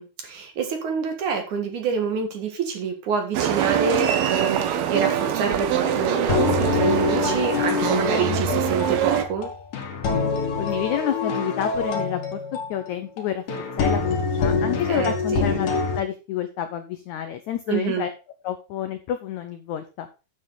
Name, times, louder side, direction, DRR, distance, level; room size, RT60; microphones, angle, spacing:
voice 1, 0.0-9.5 14.9-15.5 17.7-18.1, right 5 dB, 55° right, 5 dB, 2.9 m, -27 dB
sound 1, 3.3-9.2, right 10 dB, 80° right, 3.0 m, -24 dB
sound 2, 5.8-16.0, left 4 dB, 60° left, 3.3 m, -25 dB
voice 2, 10.6-12.4 12.7-13.4 13.8-15.7 15.9-18.1 18.4-20.1, left 10 dB, 75° left, 9 dB, 1.7 m, -29 dB
9.7 x 7.5 x 4.0 m, 0.31 s
omnidirectional pair, 4.4 m